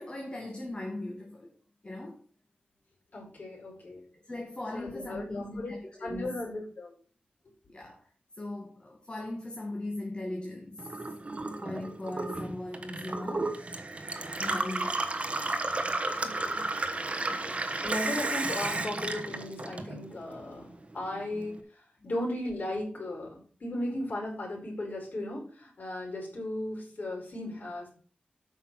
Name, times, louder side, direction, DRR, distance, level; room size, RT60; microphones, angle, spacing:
voice 1, 0.0-1.5 1.8-2.2 4.1-6.4 7.7-8.0 8.4-10.9 11.6-13.6 14.4-15.0 17.2-17.5, left 2 dB, 30° left, 2.1 m, -39 dB
voice 2, 3.1-4.0 4.7-6.9 16.2-16.7 17.3-17.6 17.8-27.9, left 1 dB, 65° left, 5.0 m, -36 dB
Gurgling / Water tap faucet / Sink (filling or washing), 10.8-20.3 20.6-21.5, right 2 dB, 40° right, 1.2 m, -33 dB
8.8 x 5.9 x 5.9 m
wide cardioid pair, 100°, 3 cm